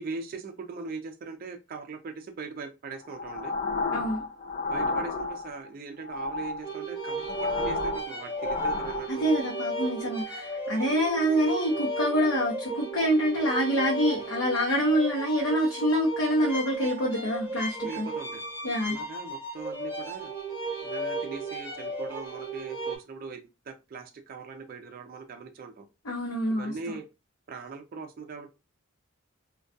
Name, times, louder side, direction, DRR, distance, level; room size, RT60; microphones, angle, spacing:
voice 1, 0.0-3.6 4.7-9.4 17.8-18.4 18.8-20.3 20.8-25.9 26.6-27.1 27.5-28.5, right 4 dB, 45° right, 5 dB, 0.4 m, -40 dB
sound 1, 3.0-5.7 6.0-9.5, left 3 dB, 35° left, 0.3 m, -32 dB
voice 2, 3.9-4.2 9.1-18.1 18.6-19.0 26.0-27.0, equal, 65° left, -4 dB, 0.7 m, -26 dB
sound 2, 6.6-23.0, right 2 dB, 10° right, 0.8 m, -35 dB
2.3 x 2.2 x 2.5 m, 0.25 s
head